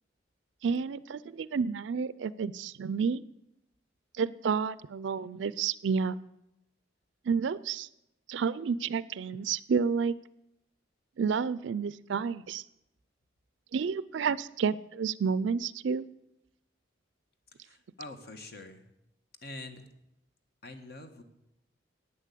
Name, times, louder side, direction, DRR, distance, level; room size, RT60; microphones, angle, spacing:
voice 1, 0.6-3.2 4.2-6.2 7.3-7.9 8.3-10.1 11.2-12.6 13.7-16.0, right 6 dB, 70° right, 18 dB, 0.4 m, -30 dB
voice 2, 17.6-18.8 19.4-19.9 20.6-21.2, left 2 dB, 55° left, 7 dB, 1.3 m, -45 dB
11.0 x 8.8 x 8.3 m, 0.86 s
head